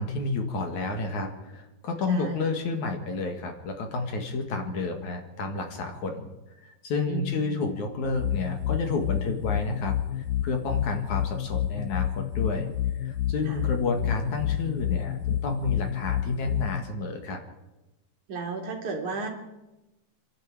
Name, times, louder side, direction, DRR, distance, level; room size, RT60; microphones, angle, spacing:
voice 1, 0.0-6.3 6.6-10.0 10.4-12.7 13.0-17.4, left 3 dB, 55° left, 4 dB, 3.0 m, -30 dB
voice 2, 2.1-2.5 7.1-7.6 13.5-13.6 18.3-19.3, right 4 dB, 55° right, 2 dB, 3.9 m, -34 dB
sound 1, 8.0-16.8, left 11 dB, 75° left, 2.1 m, -29 dB
27.5 x 11.5 x 8.9 m, 1.0 s
omnidirectional pair, 4.3 m